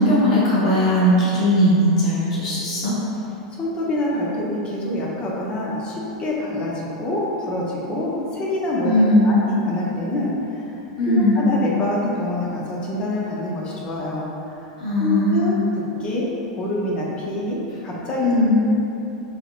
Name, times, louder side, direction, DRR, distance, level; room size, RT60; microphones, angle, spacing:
voice 1, 0.0-2.9 8.8-9.4 11.0-11.4 14.8-15.6 18.2-18.6, left 1 dB, 75° left, -8 dB, 0.8 m, -18 dB
voice 2, 3.5-10.7 11.1-14.3 15.0-18.6, left 1 dB, 30° left, -4 dB, 0.8 m, -26 dB
4.2 x 2.9 x 2.5 m, 2.9 s
hypercardioid pair, 115°, 3 cm